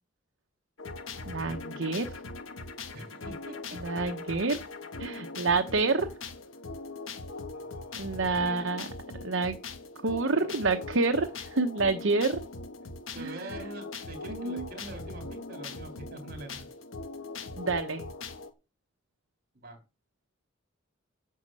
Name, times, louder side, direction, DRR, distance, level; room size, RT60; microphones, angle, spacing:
sound 1, 0.8-18.5, left 3 dB, 80° left, 1.3 m, -41 dB
voice 1, 1.3-2.1 3.7-4.6 5.0-6.1 8.0-8.9 9.2-9.6 10.0-12.4 13.2-13.5 14.3-14.7 17.6-18.1, right 3 dB, 65° right, 6 dB, 1.0 m, -28 dB
voice 2, 2.9-3.8 7.4-8.5 13.1-16.7 19.5-19.8, right 2 dB, 50° right, 4 dB, 3.6 m, -45 dB
9.4 x 6.5 x 7.6 m, 0.30 s
head